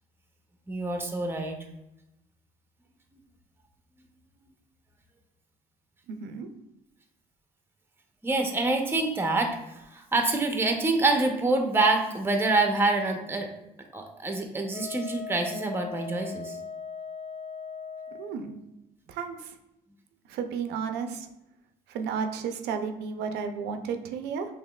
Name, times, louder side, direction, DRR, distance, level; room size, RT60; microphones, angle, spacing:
voice 1, 0.7-1.6 8.2-9.6 9.9-13.5 13.9-16.6, right 2 dB, 15° right, 3 dB, 0.6 m, -26 dB
voice 2, 6.1-6.5 18.2-18.6 19.1-19.5 20.3-21.3 21.9-24.5, right 6 dB, 80° right, 7 dB, 0.5 m, -33 dB
Wind instrument woodwind instrument, 14.7-18.4, left 6 dB, 45° left, 0.7 m, -39 dB
5.7 x 3.0 x 2.3 m, 0.88 s
cardioid pair, 110°, 17 cm